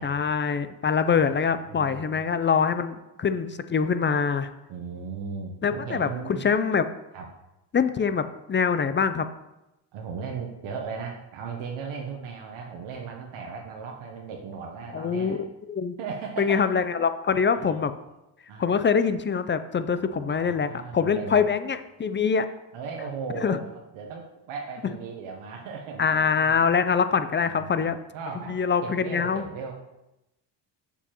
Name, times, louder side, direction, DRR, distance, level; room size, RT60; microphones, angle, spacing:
voice 1, 0.0-4.5 5.6-6.1 6.4-6.9 7.7-9.3 14.9-15.4 15.7-16.0 16.4-17.9 18.6-22.5 23.4-23.6 26.0-27.9 28.5-29.5, left 6 dB, 25° left, 11 dB, 0.4 m, -24 dB
voice 2, 1.5-2.2 4.7-6.6 7.1-7.3 9.9-15.4 16.0-16.6 17.5-17.8 18.5-18.8 19.9-21.5 22.7-26.6 27.4-29.7, right 5 dB, 75° right, 1 dB, 1.0 m, -37 dB
6.9 x 6.9 x 3.0 m, 0.94 s
supercardioid pair, 65°, 49 cm